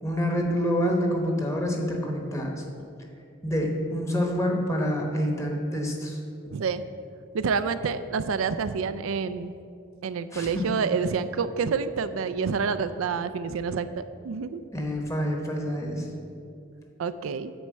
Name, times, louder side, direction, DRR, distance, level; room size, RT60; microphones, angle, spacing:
voice 1, 0.0-2.6 3.4-6.2 10.3-10.7 14.7-16.1, equal, 15° left, 1 dB, 1.1 m, -27 dB
voice 2, 6.5-6.8 7.3-9.5 10.0-14.6 17.0-17.5, right 5 dB, 85° right, 12 dB, 0.4 m, -28 dB
9.3 x 4.4 x 7.4 m, 2.5 s
head